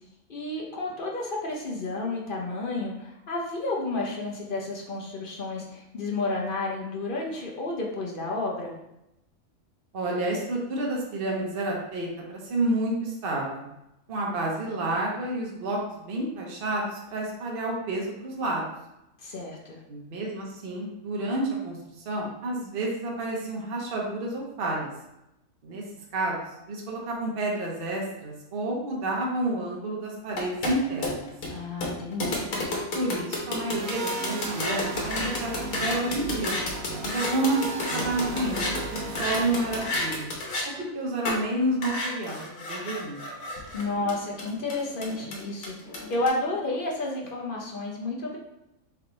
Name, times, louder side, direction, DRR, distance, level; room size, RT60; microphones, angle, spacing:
voice 1, 0.3-8.7 19.2-19.8 31.5-32.4 43.7-45.7 46.1-48.4, left 2 dB, 50° left, -2 dB, 0.7 m, -31 dB
voice 2, 9.9-13.7 14.1-18.6 19.9-21.8 22.1-24.9 25.6-25.8 26.1-26.4 26.7-31.3 32.9-36.6 37.0-40.3 40.8-42.4 42.7-43.2, right 2 dB, 45° right, -2 dB, 0.9 m, -30 dB
sound 1, 30.3-40.7 41.2-41.4 41.8-46.3, left 2 dB, 85° left, 1.4 m, -31 dB
sound 2, 33.7-40.3, right 2 dB, 80° right, 1.1 m, -36 dB
3.4 x 3.3 x 3.8 m, 0.88 s
omnidirectional pair, 1.4 m